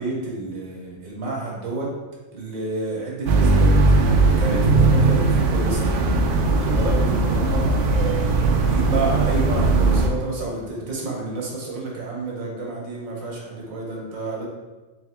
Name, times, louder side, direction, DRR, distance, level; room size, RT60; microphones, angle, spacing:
voice 1, 0.0-1.9 2.3-5.9 6.5-14.4, right 3 dB, 85° right, -2 dB, 1.5 m, -29 dB
sound 1, 3.3-10.1, right 3 dB, 70° right, 0.5 m, -18 dB
3.6 x 3.4 x 3.4 m, 1.2 s
omnidirectional pair, 1.4 m